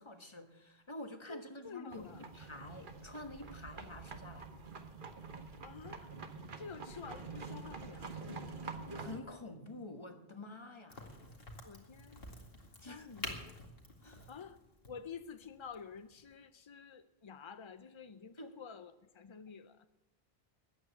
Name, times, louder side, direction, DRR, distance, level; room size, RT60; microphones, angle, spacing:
voice 1, 0.0-4.5 8.9-11.0 12.8-13.1 14.0-14.3 18.4-18.5, left 2 dB, 30° left, 6 dB, 1.3 m, -48 dB
voice 2, 1.3-2.2 5.6-6.1 6.6-8.8 11.6-12.2 12.8-13.4 14.3-14.6 14.9-19.9, left 6 dB, 45° left, 10 dB, 0.4 m, -50 dB
sound 1, 1.9-9.2, right 4 dB, 55° right, 1.2 m, -47 dB
Crack, 10.9-16.3, left 1 dB, 65° left, 2.4 m, -49 dB
14.0 x 9.6 x 8.2 m, 1.0 s
omnidirectional pair, 1.1 m